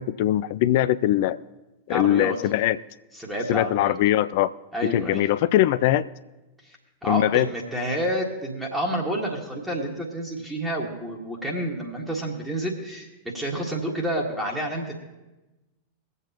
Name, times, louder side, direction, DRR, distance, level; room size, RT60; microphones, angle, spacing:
voice 1, 0.0-1.4 1.9-2.8 3.5-4.5 4.8-6.1 7.1-7.5, left 13 dB, 50° left, 16 dB, 0.4 m, -21 dB
voice 2, 1.9-2.4 3.1-4.0 4.7-5.3 6.6-6.8 7.0-14.9, right 1 dB, 5° right, -2 dB, 1.7 m, -29 dB
23.5 x 8.0 x 2.9 m, 1.1 s
figure-of-eight pair, 90°, 0 cm